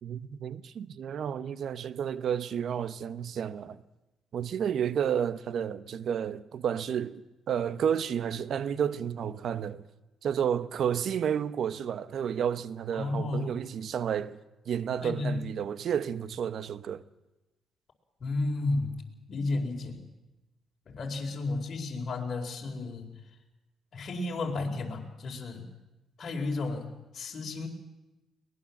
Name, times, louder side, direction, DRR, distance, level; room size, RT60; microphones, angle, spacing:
voice 1, 0.0-3.8 4.3-7.2 7.5-9.8 10.2-14.4 14.7-17.0, right 8 dB, 65° right, 1.0 m, -31 dB
voice 2, 12.9-13.5 15.0-15.4 18.2-19.0 19.3-20.0 20.9-23.1 23.9-25.7 26.2-27.7, left 2 dB, 50° left, 4.5 m, -32 dB
22.5 x 19.5 x 7.3 m
cardioid pair, 90°, 0 cm